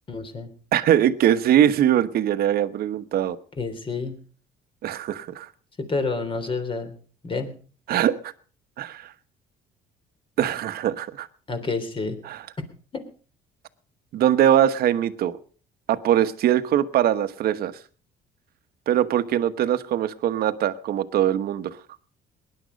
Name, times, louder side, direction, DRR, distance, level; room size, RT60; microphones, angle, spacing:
voice 1, 0.1-0.5 3.6-4.1 5.9-6.9 7.2-7.6 11.5-12.2 12.9-13.0, left 4 dB, 30° left, 7 dB, 3.5 m, -28 dB
voice 2, 0.7-3.4 4.8-5.5 7.9-8.3 8.8-9.1 10.4-11.3 12.2-12.5 14.1-15.4 15.9-17.7 18.9-21.8, right 11 dB, 65° right, 13 dB, 1.1 m, -22 dB
19.5 x 11.0 x 5.2 m, 0.41 s
cardioid pair, 110°, 17 cm